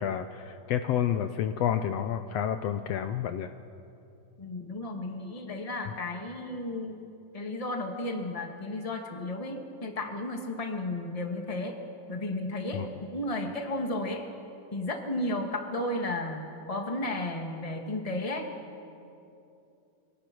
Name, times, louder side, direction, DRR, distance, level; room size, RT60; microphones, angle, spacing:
voice 1, 0.0-3.5 12.7-12.9, left 9 dB, 90° left, 8 dB, 1.4 m, -29 dB
voice 2, 4.4-7.0 7.3-11.7 12.1-14.2 14.7-18.5, left 1 dB, 15° left, 3 dB, 1.3 m, -33 dB
25.5 x 24.0 x 6.1 m, 2.7 s
omnidirectional pair, 3.8 m